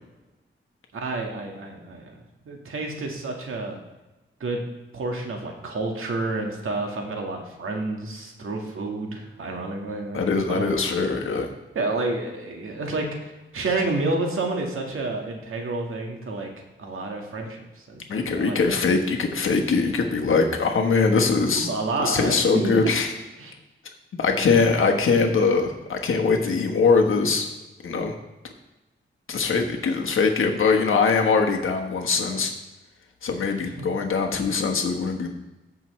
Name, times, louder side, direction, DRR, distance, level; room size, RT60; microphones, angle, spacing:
voice 1, 0.9-2.1 2.4-3.8 4.4-4.6 4.9-10.7 11.7-16.5 16.8-18.8 21.4-22.9 23.4-23.5 33.6-33.7, right 2 dB, 75° right, 2 dB, 1.7 m, -29 dB
voice 2, 10.1-11.5 18.1-21.7 22.0-23.1 24.2-27.5 27.8-28.1 29.3-32.5 33.2-35.3, left 4 dB, 75° left, 3 dB, 1.2 m, -22 dB
14.5 x 5.9 x 3.2 m, 1.1 s
cardioid pair, 85°, 21 cm